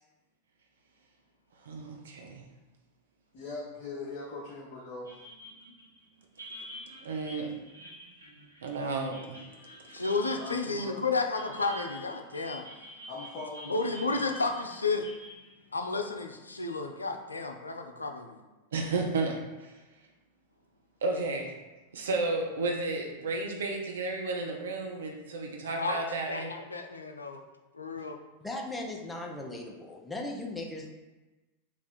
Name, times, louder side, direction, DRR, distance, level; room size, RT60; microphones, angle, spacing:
voice 1, 1.6-2.5 7.0-7.5 8.6-9.4 9.9-10.0 18.7-19.8 21.0-21.5 21.9-26.5, right 3 dB, 65° right, 1 dB, 0.6 m, -32 dB
voice 2, 3.3-5.2 10.4-11.0 13.1-14.2, left 3 dB, 45° left, -5 dB, 0.7 m, -41 dB
sound 1, 5.1-16.8, equal, 80° right, 0.9 m, -48 dB
voice 3, 9.9-12.7 13.7-15.1 15.7-18.4 25.7-27.4 27.7-28.2, left 3 dB, 80° left, 4 dB, 0.4 m, -32 dB
voice 4, 28.4-30.9, left 2 dB, 10° left, 0 dB, 0.6 m, -38 dB
3.4 x 2.5 x 4.2 m, 1.1 s
figure-of-eight pair, 90°, 0 cm